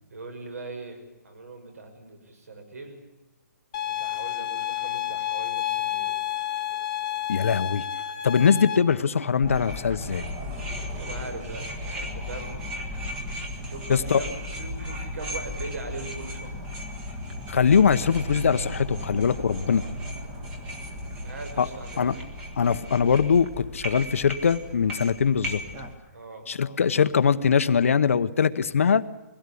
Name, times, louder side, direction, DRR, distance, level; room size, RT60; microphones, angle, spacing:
voice 1, 0.1-3.0 3.8-6.2 10.9-12.6 13.6-14.3 14.6-16.5 21.2-22.2 26.1-26.5, right 3 dB, 60° right, 6 dB, 6.3 m, -40 dB
sound 1, 3.7-8.8, left 12 dB, 20° left, 1.0 m, -30 dB
voice 2, 7.3-7.8 8.2-10.3 13.9-14.2 17.5-19.8 21.6-21.7 22.0-22.2 22.6-25.6 26.5-29.0, left 6 dB, 55° left, 12 dB, 0.9 m, -22 dB
sound 2, 9.4-25.9, left 1 dB, 10° right, 1.4 m, -35 dB
21.5 x 16.5 x 8.4 m, 1.1 s
hypercardioid pair, 175°, 9 cm